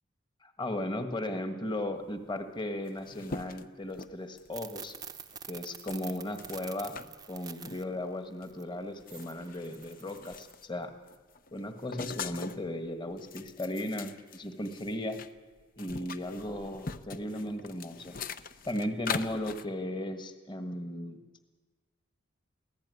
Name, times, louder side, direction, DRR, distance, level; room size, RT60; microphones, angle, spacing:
voice 1, 0.4-5.0 5.5-7.0 7.3-10.9 11.5-15.2 15.8-18.2 18.6-21.2, left 1 dB, 20° left, 7 dB, 1.5 m, -36 dB
sound 1, 2.4-2.5 2.7-4.6 5.2-5.4 5.9-7.1 7.6-7.8 8.4-8.5 8.9-10.7 11.1-12.7 13.1-15.3 15.6-19.7, left 5 dB, 45° left, 0.7 m, -42 dB
sound 2, 4.5-7.8 8.5-8.6 9.1-10.5, right 7 dB, 20° right, 0.8 m, -46 dB
23.5 x 16.0 x 9.7 m, 1.4 s
head